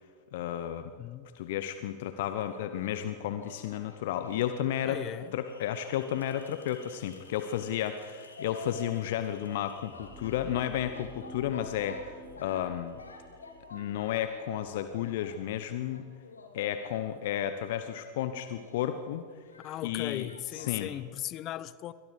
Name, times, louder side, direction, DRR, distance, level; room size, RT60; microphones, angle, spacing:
voice 1, 0.3-0.9 1.3-5.0 5.3-13.0 13.7-16.0 16.5-19.2 19.8-20.3 20.5-20.9, left 11 dB, 55° left, 10 dB, 1.2 m, -32 dB
sound 1, 2.3-20.7, left 3 dB, 75° left, 3.4 m, -51 dB
voice 2, 4.8-5.3 19.6-21.9, left 13 dB, 35° left, 18 dB, 0.9 m, -37 dB
sound 2, 9.7-15.6, equal, 5° left, 4.7 m, -50 dB
28.0 x 25.0 x 5.1 m, 2.1 s
figure-of-eight pair, 90°, 0 cm